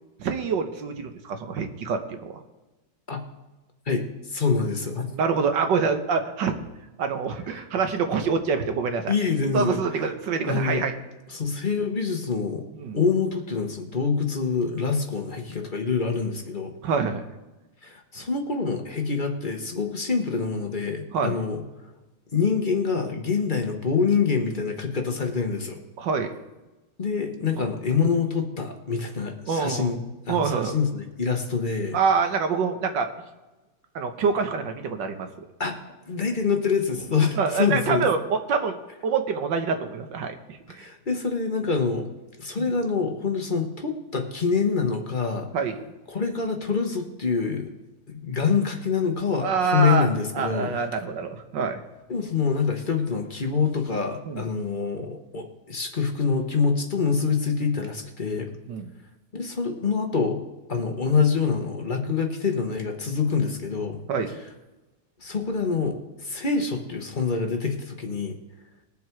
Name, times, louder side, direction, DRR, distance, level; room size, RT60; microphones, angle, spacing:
voice 1, 0.2-2.3 5.1-6.5 7.0-9.1 9.5-10.9 12.8-13.0 16.8-17.2 21.1-21.4 26.0-26.3 27.6-27.7 29.5-29.9 30.3-30.8 31.9-33.1 34.0-35.3 37.3-38.8 39.0-40.9 42.6-42.7 45.5-45.8 49.4-50.1 50.4-51.8 54.3-54.4 58.7-58.9 64.1-64.3, right 5 dB, 75° right, 6 dB, 1.8 m, -26 dB
voice 2, 3.9-5.1 7.5-7.6 9.1-10.1 10.5-10.9 11.3-12.6 12.9-16.7 17.8-21.6 22.3-25.8 27.0-30.0 30.3-32.0 35.6-35.8 36.1-38.1 40.7-42.1 42.4-45.5 46.1-47.7 48.1-50.8 52.1-58.5 59.3-60.4 60.7-64.5 65.2-68.3, left 5 dB, 30° left, 3 dB, 1.1 m, -26 dB
20.5 x 7.1 x 4.6 m, 1.1 s
omnidirectional pair, 2.0 m